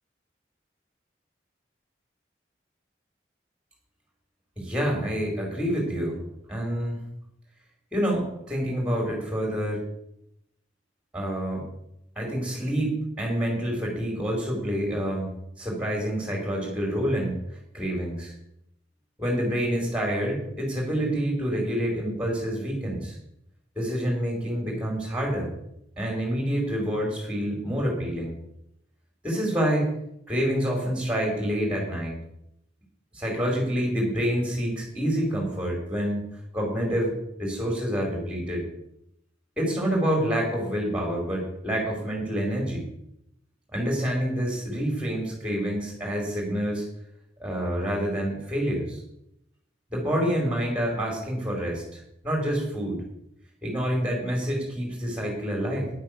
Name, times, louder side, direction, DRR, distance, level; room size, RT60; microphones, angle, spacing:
voice 1, 4.6-6.2 6.5-7.0 7.9-9.8 11.1-11.7 12.2-17.4 17.7-18.3 19.2-23.2 23.8-25.5 26.0-28.3 29.2-29.9 30.3-32.2 33.1-36.2 36.5-37.1 37.4-38.6 39.6-42.9 43.7-46.9 47.4-49.0 49.9-53.0 53.6-55.9, equal, 5° right, -1 dB, 4.5 m, -27 dB
10.5 x 8.4 x 6.5 m, 0.77 s
head